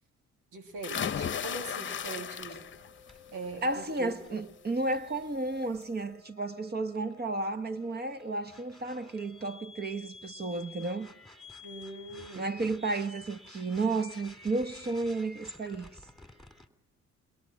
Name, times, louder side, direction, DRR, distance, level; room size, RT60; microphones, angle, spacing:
voice 1, 0.5-2.7 3.3-4.4 11.6-12.5, right 3 dB, 90° right, 2.3 m, -42 dB
sound 1, 0.8-2.9 3.3-3.7 5.1-5.2 5.6-5.7, left 8 dB, 40° left, 0.9 m, -35 dB
sound 2, 1.6-16.7, left 3 dB, ahead, 2.8 m, -53 dB
voice 2, 3.6-11.1 12.4-15.9, right 2 dB, 35° right, 1.2 m, -32 dB
29.5 x 22.0 x 5.9 m
cardioid pair, 90°, 30 cm